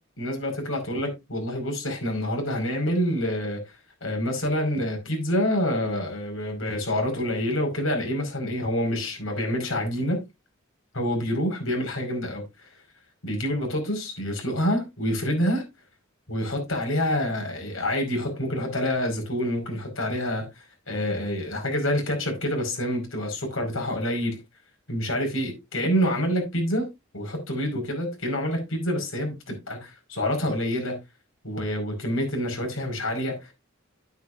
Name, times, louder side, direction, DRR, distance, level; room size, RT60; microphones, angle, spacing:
voice 1, 0.2-3.6 4.0-10.2 10.9-12.7 13.2-15.6 16.3-24.4 24.9-26.9 27.1-31.0 31.4-33.5, equal, 90° left, 5.3 m, -27 dB
10.5 x 9.3 x 2.6 m
head